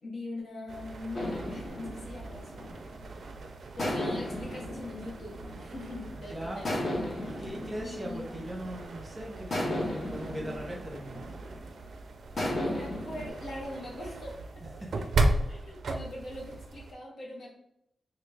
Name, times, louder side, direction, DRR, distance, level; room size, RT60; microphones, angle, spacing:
voice 1, 0.0-2.6 3.8-6.7 7.8-8.2 12.6-14.6 15.5-17.6, left 1 dB, 70° left, -2 dB, 0.9 m, -42 dB
sound 1, 0.7-16.9, right 2 dB, 65° right, 0.4 m, -37 dB
sound 2, 1.1-3.2 3.8-6.0 6.6-8.9 9.5-11.7 12.4-13.3, left 1 dB, 45° left, 0.9 m, -35 dB
voice 2, 6.1-6.7 7.2-11.3 14.7-14.9, equal, 15° right, -2 dB, 0.7 m, -40 dB
3.3 x 2.4 x 3.2 m, 0.79 s
wide cardioid pair, 160°, 0 cm